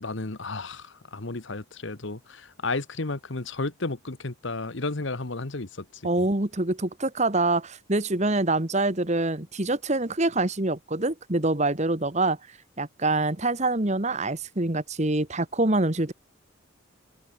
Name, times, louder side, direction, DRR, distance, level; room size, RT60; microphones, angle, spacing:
voice 1, 0.0-6.3, left 3 dB, 60° left, 1.3 m, -33 dB
voice 2, 6.0-12.4 12.8-16.1, right 2 dB, 35° right, 1.6 m, -25 dB
head